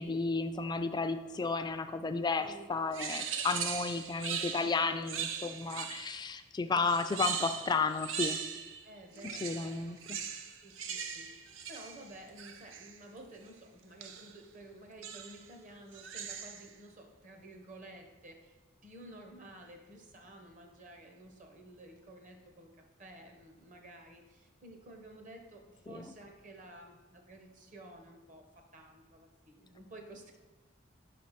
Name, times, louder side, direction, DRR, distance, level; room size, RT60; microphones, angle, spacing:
voice 1, 0.0-8.4 9.2-10.2 25.9-26.1, left 4 dB, 20° left, 10 dB, 0.3 m, -33 dB
voice 2, 2.4-2.8 3.9-4.3 6.7-7.0 8.8-10.0 10.6-18.6 18.8-22.7 23.0-28.4 28.7-30.4, right 1 dB, 40° right, 4 dB, 1.0 m, -52 dB
sound 1, 2.9-6.3 6.8-8.8 9.1-13.0 14.0-14.4 15.0-15.5 15.9-16.7, right 7 dB, 85° right, 0.6 m, -39 dB
5.4 x 4.3 x 5.8 m, 1.1 s
head